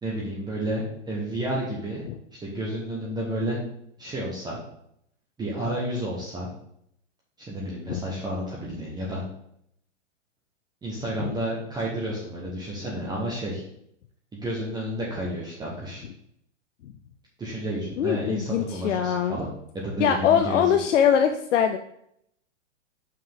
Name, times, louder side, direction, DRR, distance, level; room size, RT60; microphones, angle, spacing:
voice 1, 0.0-2.0 2.4-3.6 4.0-4.6 5.4-6.5 7.4-9.2 10.8-13.6 14.3-16.0 17.4-19.5 19.7-20.9, right 1 dB, 10° right, -5 dB, 1.3 m, -31 dB
voice 2, 18.0-19.4 20.0-21.8, left 8 dB, 80° left, 7 dB, 0.6 m, -22 dB
5.6 x 5.0 x 3.9 m, 0.72 s
hypercardioid pair, 130°, 36 cm